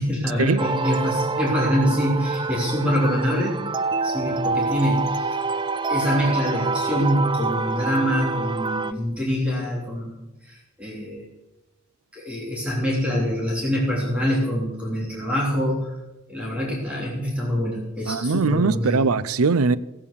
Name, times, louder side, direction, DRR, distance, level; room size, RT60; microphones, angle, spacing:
voice 1, 0.0-3.6 4.0-5.4 5.9-10.2 10.4-11.2 12.1-15.9 16.3-19.0, equal, 5° right, 3.3 m, -25 dB
sound 1, 0.6-8.9, right 3 dB, 20° right, 0.4 m, -26 dB
voice 2, 18.1-19.8, right 4 dB, 70° right, 0.5 m, -21 dB
15.0 x 8.7 x 6.8 m
head